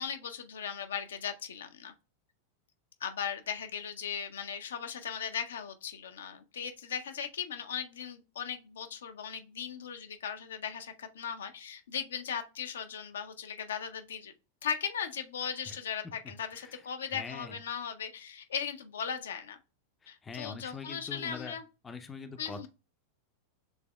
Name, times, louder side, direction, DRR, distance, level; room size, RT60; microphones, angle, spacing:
voice 1, 0.0-1.9 3.0-14.3 14.6-19.6 20.1-21.6 22.4-22.7, left 7 dB, 65° left, 0.5 m, -38 dB
voice 2, 17.1-17.6 20.0-21.6 21.8-22.7, left 4 dB, 15° left, 0.5 m, -43 dB
7.0 x 3.4 x 2.2 m
figure-of-eight pair, 90°, 0 cm